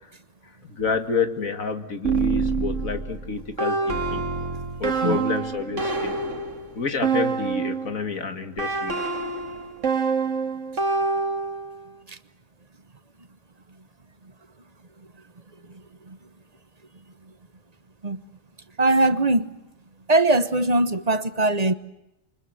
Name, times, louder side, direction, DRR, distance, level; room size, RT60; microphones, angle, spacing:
voice 1, 0.7-4.2 4.8-6.2 6.7-9.0, left 5 dB, 90° left, 2.5 m, -28 dB
sound 1, 2.0-8.0 8.6-11.8, right 4 dB, 65° right, 2.3 m, -26 dB
voice 2, 18.8-19.6 20.1-21.7, right 2 dB, 30° right, 1.1 m, -21 dB
28.0 x 24.5 x 7.8 m
omnidirectional pair, 1.4 m